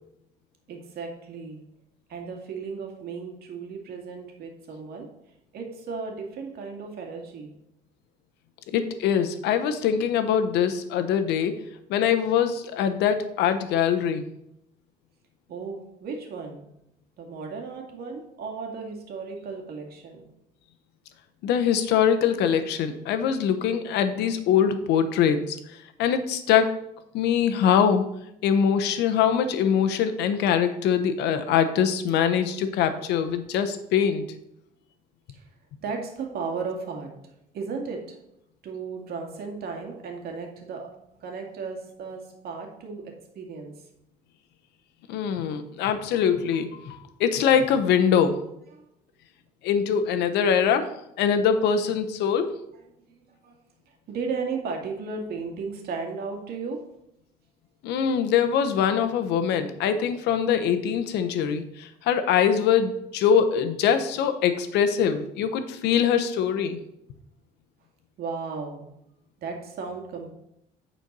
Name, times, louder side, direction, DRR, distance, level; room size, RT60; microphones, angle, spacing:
voice 1, 0.7-1.6 2.1-5.1 5.5-7.5 15.5-16.6 17.2-20.3 35.3-35.4 35.8-37.1 37.5-38.2 38.6-40.9 41.2-43.7 53.1-53.2 53.4-53.6 54.1-56.8 68.2-68.9 69.4-70.3, right 4 dB, 65° right, 2 dB, 2.0 m, -35 dB
voice 2, 8.7-11.6 11.9-14.3 21.4-25.6 26.0-26.8 27.1-28.0 28.4-34.2 45.1-48.4 49.6-52.6 57.8-66.8, left 8 dB, 85° left, 9 dB, 0.9 m, -23 dB
9.2 x 4.4 x 5.4 m, 0.80 s
cardioid pair, 110°, 17 cm